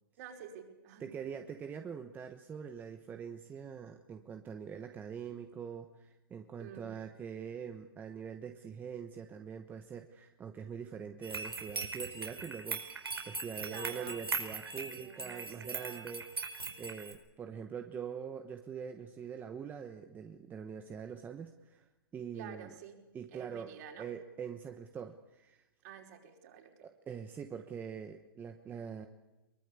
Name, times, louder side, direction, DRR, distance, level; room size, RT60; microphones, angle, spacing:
voice 1, 0.2-1.1 6.6-7.0 13.6-14.2 14.9-16.1 22.3-23.0 23.3-24.1 25.8-26.8, right 8 dB, 45° right, 2 dB, 5.0 m, -49 dB
voice 2, 1.0-21.9 22.1-22.7 23.1-25.6 26.8-29.1, right 7 dB, 15° right, 7 dB, 1.1 m, -44 dB
sound 1, 11.2-17.1, right 4 dB, 90° right, 5.0 m, -40 dB
23.0 x 21.5 x 8.4 m, 1.0 s
hypercardioid pair, 130°, 12 cm